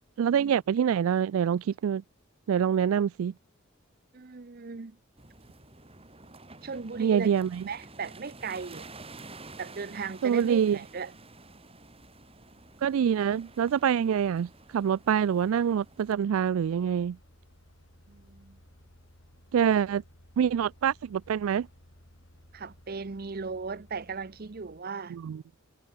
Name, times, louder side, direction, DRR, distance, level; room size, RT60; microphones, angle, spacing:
voice 1, 0.2-2.0 2.5-3.3 7.0-7.6 10.2-10.8 12.8-17.2 19.5-20.0 20.4-21.7 25.1-25.4, right 8 dB, 80° right, 0.3 m, -25 dB
voice 2, 4.1-5.0 6.6-7.3 7.7-8.9 9.6-11.1 18.1-18.6 22.5-25.2, right 4 dB, 45° right, 0.7 m, -37 dB
sound 1, 5.2-16.1, right 3 dB, 30° right, 6.9 m, -50 dB
sound 2, 10.4-24.8, equal, 65° left, 5.2 m, -59 dB
head